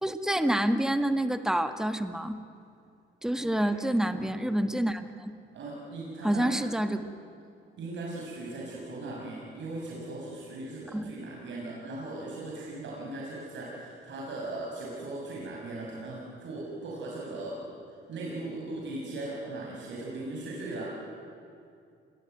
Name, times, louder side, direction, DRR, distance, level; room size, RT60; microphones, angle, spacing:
voice 1, 0.0-2.4 3.2-5.3 6.2-7.0 10.9-11.1, right 1 dB, 5° right, 8 dB, 1.7 m, -28 dB
voice 2, 5.5-6.6 7.8-20.9, right 2 dB, 70° right, -3 dB, 6.6 m, -38 dB
27.5 x 21.5 x 9.3 m, 2.4 s
cardioid pair, 90°, 20 cm